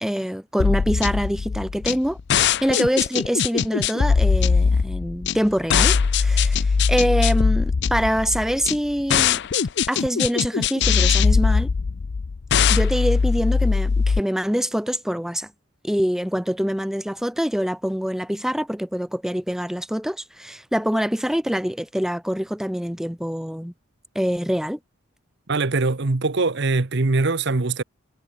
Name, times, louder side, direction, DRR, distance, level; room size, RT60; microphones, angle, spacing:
voice 1, 0.0-9.4 9.9-11.7 12.7-15.5 15.8-23.7 24.1-24.8, equal, ahead, 0.8 m, -25 dB
sound 1, 0.6-14.2, left 5 dB, 55° left, 0.5 m, -20 dB
voice 2, 25.5-27.8, right 3 dB, 55° right, 1.0 m, -22 dB
head